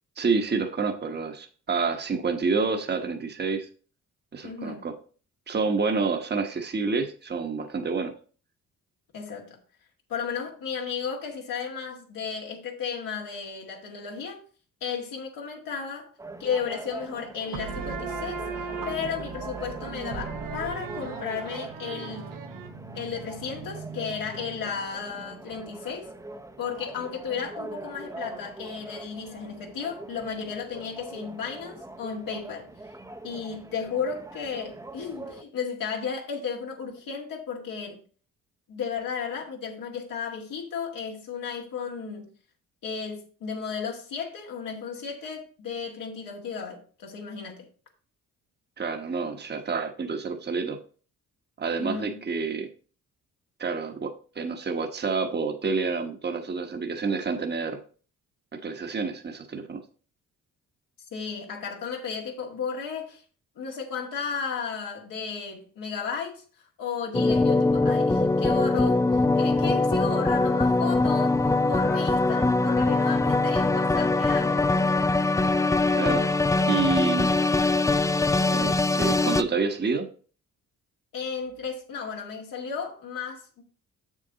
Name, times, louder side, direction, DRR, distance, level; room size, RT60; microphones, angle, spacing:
voice 1, 0.2-3.7 4.3-4.9 5.5-8.1 48.8-50.8 51.6-52.7 53.6-57.8 58.5-59.8 75.9-76.3 76.7-77.3 78.5-80.1, right 4 dB, 30° right, 1.1 m, -28 dB
voice 2, 4.4-4.8 9.1-9.6 10.1-14.4 14.8-16.1 16.4-22.4 22.9-26.1 26.6-32.7 33.2-38.0 38.7-42.3 42.8-47.7 51.8-52.1 61.1-63.2 63.6-66.4 66.8-74.9 81.1-83.6, left 6 dB, 80° left, 2.0 m, -34 dB
sound 1, 16.2-35.4, right 2 dB, 10° right, 0.7 m, -43 dB
sound 2, 17.5-24.8, right 5 dB, 75° right, 1.1 m, -37 dB
sound 3, 67.1-79.4, left 3 dB, 10° left, 0.4 m, -22 dB
6.9 x 6.5 x 4.0 m
cardioid pair, 85°, 33 cm